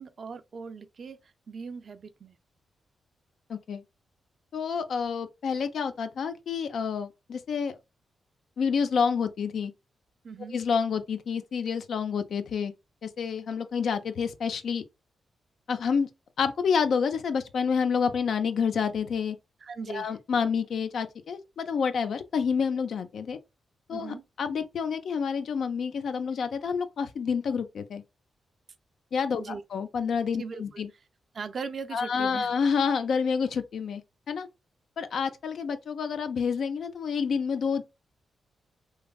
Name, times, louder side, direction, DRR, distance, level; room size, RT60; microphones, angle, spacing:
voice 1, 0.0-2.4 10.2-10.6 19.6-20.2 23.9-24.2 29.4-29.6 30.4-30.8 31.3-32.5, right 5 dB, 55° right, 0.4 m, -39 dB
voice 2, 3.5-3.8 4.5-7.8 8.6-9.7 10.5-12.7 13.0-14.8 15.7-16.1 16.4-19.4 19.9-23.4 23.9-28.0 29.1-29.4 29.7-30.9 31.9-34.0 34.3-34.5 35.0-37.8, left 6 dB, 70° left, 0.4 m, -28 dB
3.2 x 2.6 x 2.3 m
cardioid pair, 65°, 0 cm